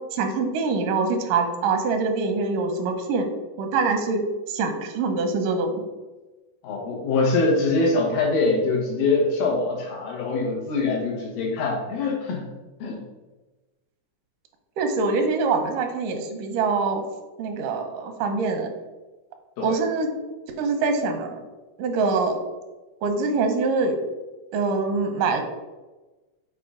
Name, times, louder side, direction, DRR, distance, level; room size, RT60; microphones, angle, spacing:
voice 1, 0.1-3.3 3.6-4.2 4.5-5.7 14.8-17.0 17.4-18.7 19.6-20.1 20.6-21.4 21.8-22.4 23.0-24.0 24.5-25.4, right 4 dB, 85° right, 5 dB, 2.4 m, -24 dB
voice 2, 6.6-12.5 12.8-13.0 19.6-19.8, left 3 dB, 85° left, -1 dB, 3.0 m, -23 dB
6.8 x 4.1 x 3.7 m, 1.2 s
omnidirectional pair, 3.7 m